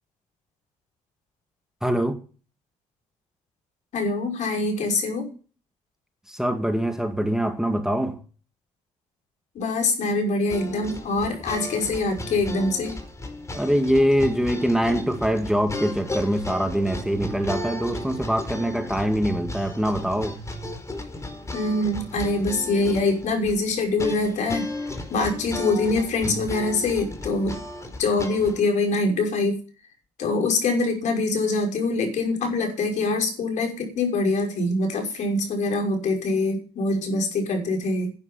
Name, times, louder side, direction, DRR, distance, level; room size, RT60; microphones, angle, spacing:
voice 1, 1.8-2.2 6.3-8.2 13.5-20.4, equal, 5° right, 2.1 m, -23 dB
voice 2, 3.9-5.3 9.5-13.0 21.5-24.7 25.1-27.6 28.0-29.6 30.2-38.1, left 2 dB, 60° left, 5.7 m, -24 dB
sound 1, 10.5-28.6, left 1 dB, 20° left, 4.9 m, -34 dB
11.0 x 9.7 x 5.8 m
supercardioid pair, 65°, 14 cm